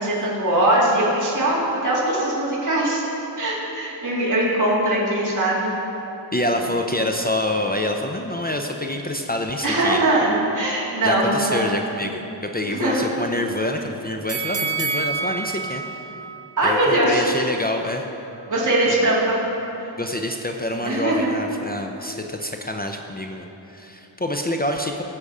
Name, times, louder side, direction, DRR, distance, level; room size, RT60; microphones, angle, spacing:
voice 1, 0.0-3.1 3.4-5.7 9.6-11.6 12.7-13.0 16.6-17.2 18.5-19.4 20.8-21.3, right 1 dB, 40° right, -7 dB, 2.6 m, -21 dB
voice 2, 6.3-10.0 11.0-16.1 16.6-18.1 18.9-19.1 20.0-25.0, left 1 dB, 20° left, 3 dB, 0.6 m, -27 dB
sound 1, 14.3-17.4 17.8-17.9, right 4 dB, 70° right, 1.1 m, -29 dB
16.5 x 6.8 x 4.9 m, 3.0 s
wide cardioid pair, 125°, 45 cm